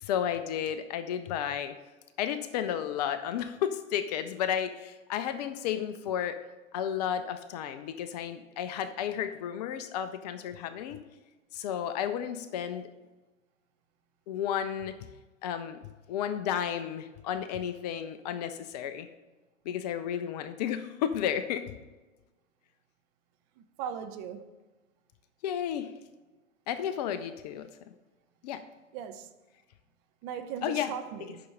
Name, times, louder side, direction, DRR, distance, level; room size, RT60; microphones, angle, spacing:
voice 1, 0.0-1.7 2.2-6.4 6.7-11.0 11.5-12.9 14.3-15.1 15.4-15.8 16.1-19.1 19.7-21.6 25.4-25.9 26.7-27.7 28.4-28.6 30.6-30.9, left 9 dB, 35° left, 0.5 m, -32 dB
voice 2, 23.8-24.4 28.9-29.3 30.2-31.4, right 8 dB, 30° right, 0.7 m, -38 dB
9.2 x 6.0 x 5.5 m
figure-of-eight pair, 110°, 39 cm